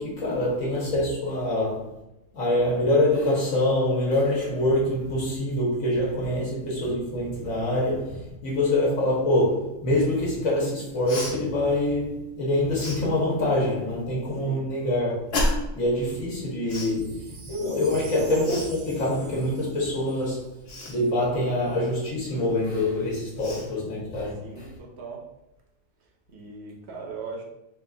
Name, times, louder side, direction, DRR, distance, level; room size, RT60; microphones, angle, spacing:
voice 1, 0.0-1.9 2.3-20.5 20.9-24.6, left 1 dB, 70° left, 1.6 m, -25 dB
Cough, 11.1-11.3 12.8-13.0 15.3-15.8 16.7-17.0 18.4-18.7 20.7-21.0 22.8-22.9 23.4-23.7, left 1 dB, 55° left, 1.0 m, -29 dB
voice 2, 14.4-14.7 24.4-25.2 26.0-27.4, right 4 dB, 55° right, 1.0 m, -39 dB
Wind chime, 16.8-21.1 21.7-21.8, right 4 dB, 75° right, 1.3 m, -48 dB
3.7 x 2.5 x 3.8 m
omnidirectional pair, 1.4 m